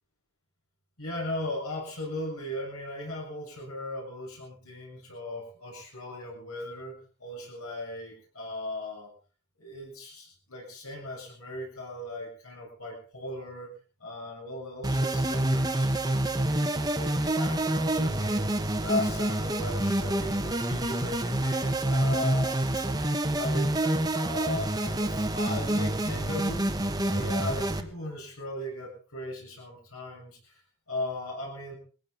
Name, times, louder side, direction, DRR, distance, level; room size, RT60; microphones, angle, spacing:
voice 1, 1.0-9.1 9.6-13.7 14.0-16.7 17.0-22.9 23.3-26.7 27.0-30.5 30.9-31.8, left 1 dB, 70° left, -1 dB, 7.3 m, -37 dB
sound 1, 14.8-27.8, right 1 dB, 15° right, 1.3 m, -27 dB
20.5 x 16.0 x 4.1 m, 0.38 s
head